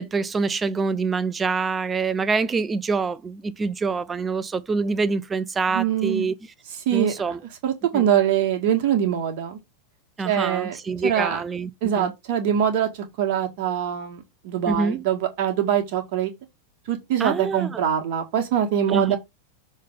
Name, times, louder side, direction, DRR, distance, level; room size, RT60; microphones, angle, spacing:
voice 1, 0.0-6.3 6.9-7.4 7.9-8.1 10.2-11.7 12.0-12.1 14.7-15.0 17.2-17.8 18.9-19.2, right 4 dB, 15° right, 0.6 m, -25 dB
voice 2, 5.7-6.2 6.9-7.1 7.6-9.6 10.2-10.8 11.0-11.4 11.8-16.3 16.9-19.2, right 9 dB, 45° right, 1.9 m, -23 dB
6.5 x 3.4 x 5.4 m
figure-of-eight pair, 90°, 0 cm